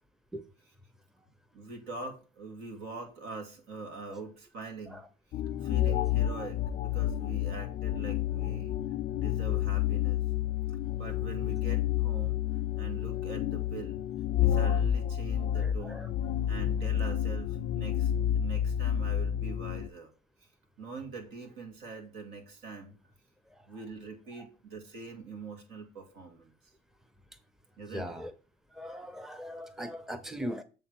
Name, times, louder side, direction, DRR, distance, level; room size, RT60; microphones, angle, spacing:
voice 1, 1.5-5.0 5.6-10.2 11.0-12.4 12.8-14.0 14.4-16.1 16.5-20.1 20.8-23.0 23.7-26.5 27.8-28.2, right 4 dB, 80° right, 2.0 m, -43 dB
sound 1, 5.3-19.9, left 11 dB, 60° left, 0.4 m, -30 dB
voice 2, 15.5-16.1 23.5-23.7 24.0-24.5 27.9-28.3 28.7-30.6, equal, ahead, 0.6 m, -40 dB
7.7 x 3.6 x 6.2 m
cardioid pair, 110°, 17 cm